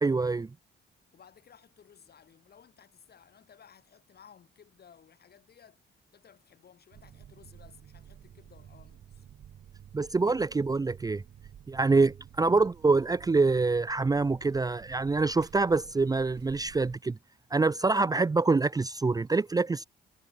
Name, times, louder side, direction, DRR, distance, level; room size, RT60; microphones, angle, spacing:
voice 1, 0.0-0.5 9.9-11.2 11.7-17.2 17.5-19.8, right 3 dB, 20° right, 0.6 m, -25 dB
voice 2, 1.1-5.8 6.1-9.3, left 8 dB, 55° left, 7.0 m, -57 dB
sound 1, 6.9-17.0, right 9 dB, 60° right, 2.1 m, -51 dB
cardioid pair, 90°, 20 cm